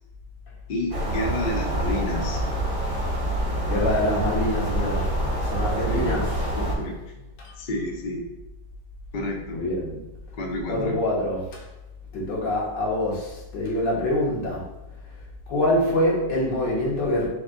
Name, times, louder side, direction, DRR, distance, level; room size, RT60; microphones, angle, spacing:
voice 1, 0.7-2.4 5.9-6.2 6.5-7.1 7.6-8.3 9.1-9.6 10.3-11.0, left 1 dB, 60° left, 1 dB, 0.5 m, -30 dB
sound 1, 0.9-6.8, right 1 dB, 35° right, 1.0 m, -26 dB
voice 2, 3.6-6.6 7.4-7.6 9.5-10.0 10.7-11.7 12.1-14.7 15.1-15.2 15.5-17.3, left 1 dB, 80° left, -3 dB, 1.8 m, -25 dB
4.0 x 3.3 x 3.8 m, 1.0 s
omnidirectional pair, 1.9 m